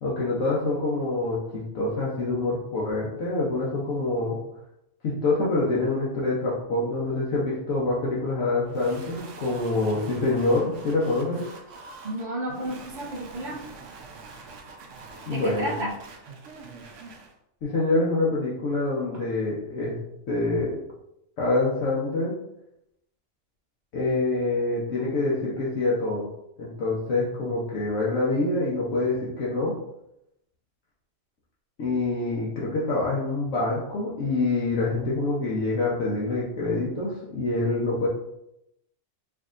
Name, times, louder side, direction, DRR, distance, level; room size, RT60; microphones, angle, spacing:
voice 1, 0.0-4.4 5.0-11.4 15.3-15.7 17.6-20.0 20.3-20.8 21.4-22.3 23.9-26.3 26.6-29.7 31.8-38.1, left 2 dB, 75° left, -6 dB, 1.1 m, -26 dB
sound 1, 8.6-17.3, right 3 dB, 75° right, 0.9 m, -44 dB
voice 2, 12.0-13.6 15.3-15.9, right 1 dB, 50° right, -1 dB, 0.7 m, -32 dB
4.6 x 2.7 x 2.4 m, 0.82 s
omnidirectional pair, 1.3 m